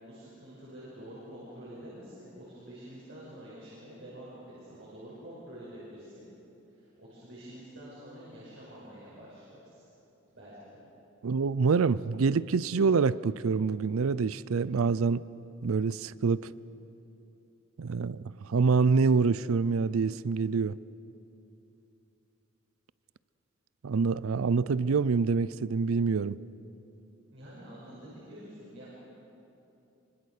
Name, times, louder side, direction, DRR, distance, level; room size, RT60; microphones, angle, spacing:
voice 1, 0.0-6.2 6.7-9.8 10.3-10.8 27.3-28.9, equal, 60° right, -7 dB, 6.2 m, -47 dB
voice 2, 11.2-15.2 15.6-16.5 17.8-20.8 23.8-26.4, right 5 dB, 85° right, 19 dB, 0.5 m, -26 dB
25.0 x 24.5 x 6.6 m, 3.0 s
head